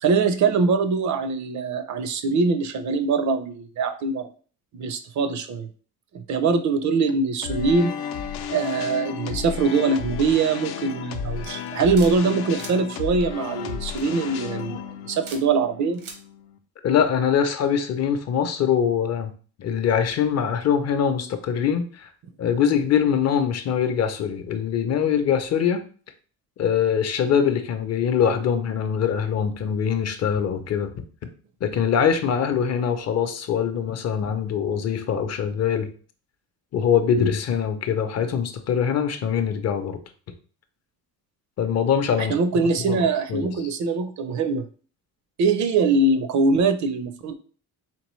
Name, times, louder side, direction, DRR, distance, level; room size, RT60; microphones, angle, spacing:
voice 1, 0.0-4.3 4.7-5.7 6.1-7.9 8.5-16.0 42.2-44.7 45.4-47.4, right 4 dB, 50° right, 10 dB, 0.5 m, -23 dB
sound 1, 7.4-16.6, left 8 dB, 85° left, 0.6 m, -33 dB
sound 2, 11.4-12.1 12.5-12.7 14.0-14.3 15.2-15.4 15.9-16.2, right 4 dB, 90° right, 1.2 m, -40 dB
voice 2, 16.8-19.3 19.6-22.1 22.4-25.8 26.6-30.9 31.6-35.9 36.7-40.0 41.6-42.3 42.9-43.0 43.3-43.5, left 7 dB, 45° left, 8 dB, 0.5 m, -23 dB
4.4 x 3.3 x 3.0 m, 0.40 s
cardioid pair, 155°, 37 cm